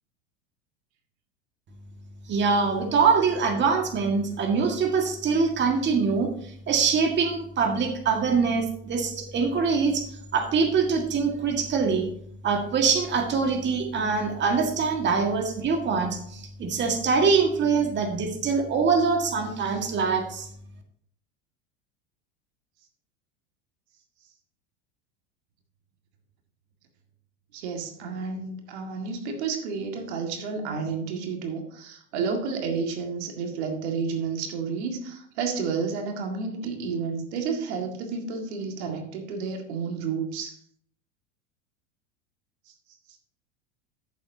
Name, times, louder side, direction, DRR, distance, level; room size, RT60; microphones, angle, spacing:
voice 1, 2.3-10.1 10.3-12.1 12.4-20.5, right 5 dB, 30° right, 3 dB, 1.8 m, -24 dB
voice 2, 27.5-40.6, right 5 dB, 65° right, 3 dB, 2.0 m, -31 dB
13.5 x 7.2 x 2.8 m, 0.64 s
hypercardioid pair, 90°, 35 cm